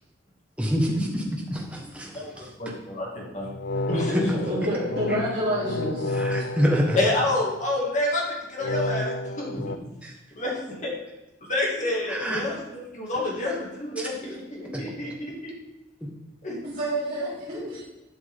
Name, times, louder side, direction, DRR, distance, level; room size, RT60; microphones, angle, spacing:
voice 1, 0.6-2.1 6.1-7.0 9.5-9.6 10.0-10.1 12.1-12.4 14.7-14.8, equal, 5° right, -2 dB, 1.5 m, -26 dB
voice 2, 2.1-3.5 3.9-4.3 7.0-9.7 10.3-10.9 11.5-15.5 16.4-16.6, left 1 dB, 40° left, -3 dB, 2.3 m, -28 dB
sound 1, 3.4-7.7 8.6-9.8, left 2 dB, 60° left, 0.4 m, -31 dB
voice 3, 4.3-6.1 16.6-17.8, equal, 50° right, -11 dB, 3.3 m, -28 dB
11.5 x 6.4 x 3.7 m, 0.97 s
head